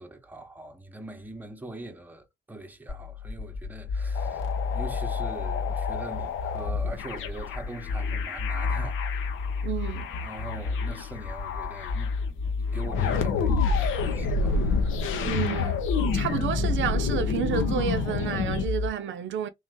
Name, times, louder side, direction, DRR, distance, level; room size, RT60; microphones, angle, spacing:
voice 1, 0.0-9.5 10.2-15.0, right 2 dB, 10° right, 0.8 m, -42 dB
sound 1, 2.9-18.9, left 4 dB, 30° left, 0.7 m, -31 dB
sound 2, 4.2-18.7, left 5 dB, 90° left, 0.8 m, -30 dB
voice 2, 9.6-10.1 15.2-15.9 16.1-19.5, right 8 dB, 70° right, 0.6 m, -30 dB
3.1 x 2.6 x 3.6 m
cardioid pair, 90°, 20 cm